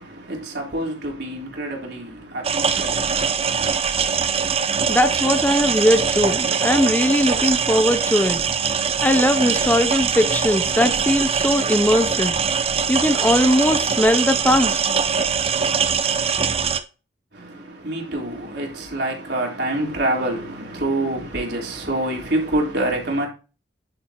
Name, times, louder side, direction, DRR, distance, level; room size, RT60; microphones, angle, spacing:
voice 1, 0.0-3.8 17.3-23.3, right 1 dB, 60° right, 3.8 m, -27 dB
sound 1, 2.4-16.8, right 6 dB, 30° right, 0.7 m, -22 dB
voice 2, 4.9-8.5 9.0-12.4 12.9-14.8, left 1 dB, 10° left, 0.5 m, -19 dB
10.5 x 8.6 x 2.9 m
head